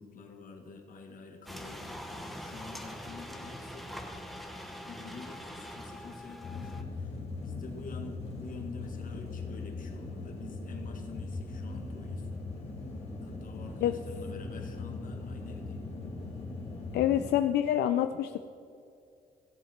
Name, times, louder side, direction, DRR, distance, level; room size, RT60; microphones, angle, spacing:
voice 1, 0.0-3.9 4.8-12.3 13.2-15.8, left 4 dB, 55° left, 3 dB, 1.7 m, -47 dB
sound 1, 1.5-6.8, left 1 dB, ahead, 1.1 m, -43 dB
sound 2, 6.4-17.3, left 3 dB, 35° left, 2.3 m, -40 dB
voice 2, 16.9-18.4, left 11 dB, 85° left, 8 dB, 0.4 m, -26 dB
16.0 x 7.3 x 4.3 m, 2.5 s
cardioid pair, 105°, 16 cm